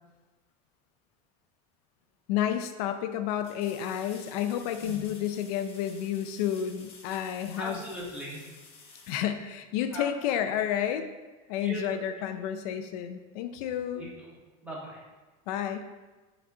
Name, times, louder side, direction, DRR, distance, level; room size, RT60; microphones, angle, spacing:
sound 1, 2.0-2.1 3.4-10.0 12.9-13.0, left 4 dB, 30° left, 1.0 m, -52 dB
voice 1, 2.3-7.8 9.1-11.1 11.5-14.0 15.5-15.9, left 10 dB, 80° left, 8 dB, 0.6 m, -30 dB
voice 2, 7.6-8.5 9.9-10.1 11.6-11.8 13.9-14.3 14.6-15.0, right 1 dB, 5° right, -7 dB, 1.8 m, -39 dB
5.9 x 4.1 x 6.0 m, 1.2 s
cardioid pair, 175°, 19 cm